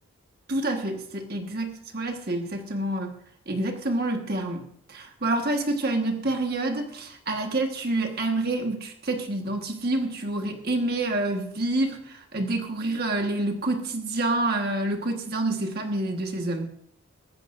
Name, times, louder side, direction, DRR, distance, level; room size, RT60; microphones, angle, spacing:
voice 1, 0.5-3.1 3.5-4.6 4.9-16.7, right 2 dB, 45° right, 3 dB, 1.4 m, -28 dB
19.0 x 15.5 x 2.6 m, 0.70 s
head